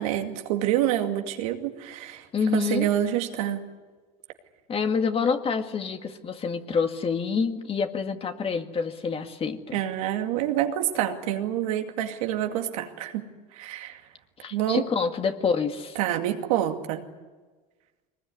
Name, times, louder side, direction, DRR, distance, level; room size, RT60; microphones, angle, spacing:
voice 1, 0.0-2.3 2.5-3.6 9.7-14.0 14.5-14.8 16.0-17.0, right 11 dB, 90° right, 4 dB, 2.3 m, -27 dB
voice 2, 2.3-2.9 4.7-9.8 14.4-16.0, left 5 dB, 35° left, 6 dB, 2.1 m, -27 dB
23.0 x 20.5 x 9.7 m, 1.3 s
supercardioid pair, 100°, 17 cm